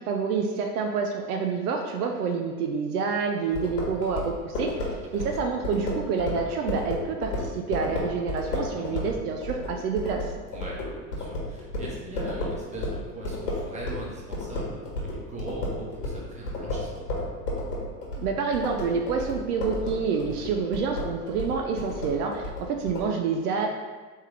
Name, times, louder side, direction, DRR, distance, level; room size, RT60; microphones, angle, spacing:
voice 1, 0.0-10.3 18.2-23.7, right 5 dB, 70° right, 3 dB, 0.7 m, -28 dB
sound 1, 3.5-14.1 14.3-23.1, left 2 dB, 85° left, 1.5 m, -32 dB
voice 2, 4.9-5.4 8.7-9.0 10.5-17.1, right 1 dB, 15° right, -5 dB, 1.3 m, -40 dB
4.4 x 3.3 x 3.4 m, 1.3 s
hypercardioid pair, 100°, 47 cm